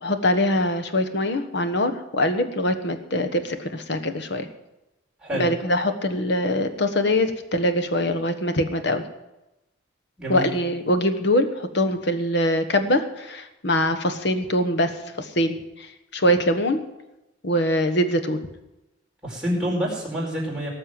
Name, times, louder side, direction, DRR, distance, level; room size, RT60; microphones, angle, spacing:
voice 1, 0.0-4.5 5.3-9.0 10.3-14.9 15.2-15.6 16.1-16.8 17.4-18.4, left 1 dB, 70° left, 8 dB, 1.3 m, -23 dB
voice 2, 10.2-10.5 19.2-20.7, equal, 5° right, -5 dB, 4.9 m, -27 dB
18.0 x 6.7 x 7.6 m, 0.94 s
head